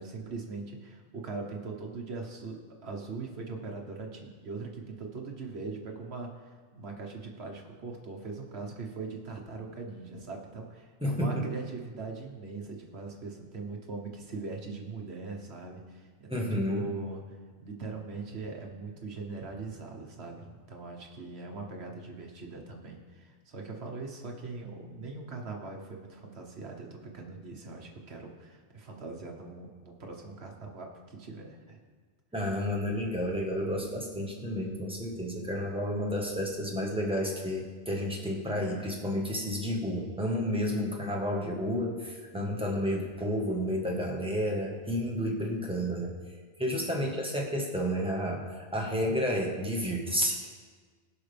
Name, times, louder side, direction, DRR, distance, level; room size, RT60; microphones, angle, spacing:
voice 1, 0.0-31.8 42.3-42.6 46.7-47.1, right 4 dB, 65° right, 2 dB, 1.4 m, -41 dB
voice 2, 11.0-11.5 16.3-16.9 32.3-46.1 46.6-50.5, equal, 5° right, -1 dB, 1.3 m, -31 dB
17.5 x 5.8 x 3.4 m, 1.5 s
omnidirectional pair, 1.2 m